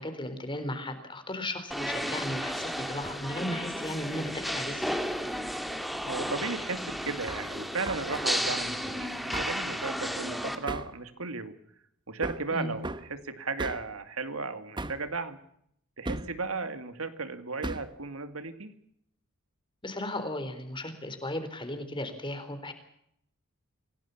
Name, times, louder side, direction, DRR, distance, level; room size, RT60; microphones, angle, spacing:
voice 1, 0.0-5.0 12.5-12.7 19.8-22.7, left 1 dB, 25° left, 9 dB, 4.0 m, -36 dB
sound 1, 1.7-10.6, equal, ahead, 2.6 m, -33 dB
voice 2, 6.1-11.6 12.1-15.4 16.0-18.7, right 4 dB, 75° right, 9 dB, 2.4 m, -35 dB
Hammer, 7.3-7.5 7.8-8.1 9.3-9.6 10.7-11.0 12.2-12.5 12.8-13.1 13.6-13.9 14.8-15.1 16.0-16.4 17.6-17.9, right 2 dB, 20° right, 1.1 m, -36 dB
26.5 x 18.0 x 7.2 m, 0.72 s
head